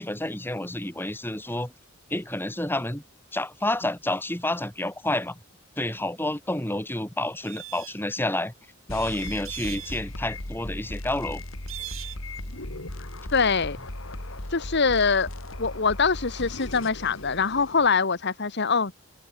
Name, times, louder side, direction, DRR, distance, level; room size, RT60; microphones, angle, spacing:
voice 1, 0.0-1.7 2.1-3.0 3.3-5.4 5.8-8.5 8.9-11.4, left 1 dB, 10° left, 2.6 m, -29 dB
sound 1, 7.4-8.0 8.9-10.0 11.7-12.2, right 15 dB, 80° right, 5.0 m, -39 dB
sound 2, 8.9-17.9, left 1 dB, 80° left, 3.4 m, -37 dB
voice 2, 13.3-13.8 14.5-15.3 15.6-18.9, left 5 dB, 55° left, 1.5 m, -23 dB
open air
head